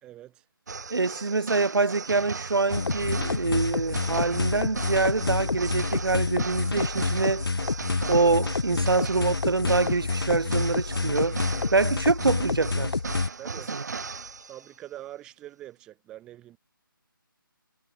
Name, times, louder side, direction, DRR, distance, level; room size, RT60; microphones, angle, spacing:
voice 1, 0.0-0.4 8.7-9.0 11.5-11.7 13.4-13.8 14.5-16.6, right 13 dB, 5° right, 1.9 m, -44 dB
sound 1, 0.7-14.7, right 5 dB, 50° right, 2.1 m, -38 dB
voice 2, 0.9-7.4 8.1-11.4 11.7-13.0 13.7-13.8, right 3 dB, 80° right, 5.1 m, -25 dB
sound 2, 2.7-13.3, left 4 dB, 85° left, 1.4 m, -28 dB
hypercardioid pair, 175°, 12 cm